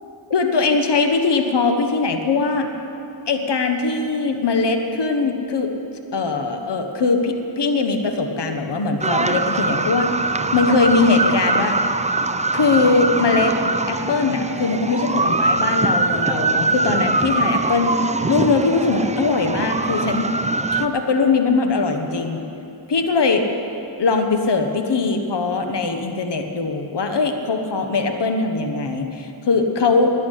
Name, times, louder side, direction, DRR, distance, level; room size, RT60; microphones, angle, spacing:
voice 1, 0.3-2.7 3.3-5.7 6.1-10.1 10.5-11.7 12.5-13.5 13.9-17.9 18.3-20.3 20.7-22.4 22.9-23.4 24.0-30.1, left 4 dB, 70° left, 5 dB, 1.3 m, -20 dB
sound 1, 9.0-20.9, right 2 dB, 15° right, 0.6 m, -22 dB
12.0 x 9.6 x 9.9 m, 2.8 s
cardioid pair, 45°, 43 cm